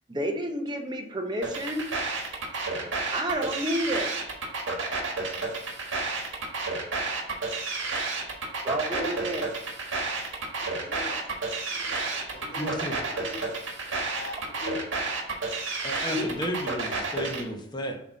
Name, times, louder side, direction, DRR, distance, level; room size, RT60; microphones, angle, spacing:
voice 1, 0.1-1.9 2.7-4.1 8.6-9.4 10.6-10.7 16.1-16.3, equal, 25° right, 4 dB, 0.7 m, -30 dB
sound 1, 1.4-17.4, right 3 dB, 85° right, 1.5 m, -31 dB
voice 2, 10.8-11.2 11.7-13.5 13.9-15.0, left 2 dB, 65° left, 1 dB, 1.3 m, -40 dB
voice 3, 12.6-13.0 15.8-18.0, equal, 20° left, 3 dB, 0.8 m, -33 dB
7.1 x 2.9 x 5.1 m, 0.81 s
head